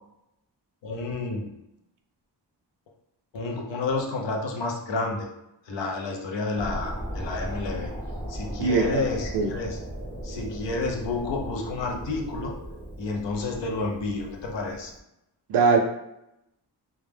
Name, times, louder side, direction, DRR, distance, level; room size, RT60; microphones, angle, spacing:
voice 1, 0.8-1.5 3.3-5.3 5.7-7.9 8.3-9.8 10.2-12.5 13.0-14.9, left 3 dB, 90° left, 1 dB, 0.6 m, -30 dB
sound 1, 6.5-15.0, right 1 dB, 10° left, 0.5 m, -37 dB
voice 2, 8.6-9.1 9.3-9.5 15.5-15.8, right 5 dB, 75° right, 4 dB, 0.5 m, -21 dB
2.3 x 2.0 x 3.2 m, 0.88 s
wide cardioid pair, 105°, 42 cm